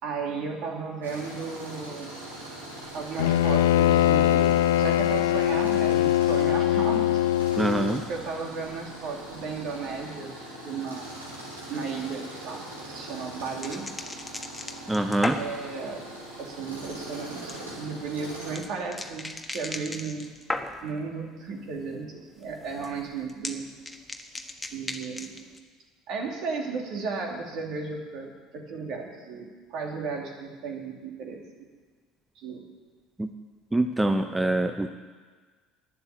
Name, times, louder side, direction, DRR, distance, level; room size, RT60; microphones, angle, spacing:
voice 1, 0.0-2.1 2.9-7.2 7.5-7.8 8.1-10.3 10.6-11.1 11.7-13.9 15.2-16.0 16.4-20.3 20.8-23.6 24.7-25.4 26.1-31.4 32.4-32.6, right 4 dB, 55° right, 1 dB, 2.8 m, -34 dB
Tools, 1.0-18.6, right 1 dB, 80° right, 3.9 m, -42 dB
Bowed string instrument, 3.2-8.1, left 12 dB, 70° left, 0.3 m, -22 dB
voice 2, 7.5-8.0 14.9-15.4 33.2-33.3 33.7-34.9, right 1 dB, 10° right, 7 dB, 0.8 m, -24 dB
sound 1, 11.8-21.0 21.4-21.9 22.2-25.6, left 2 dB, 10° left, 1.4 m, -38 dB
12.0 x 10.0 x 8.5 m, 1.5 s
figure-of-eight pair, 60°, 0 cm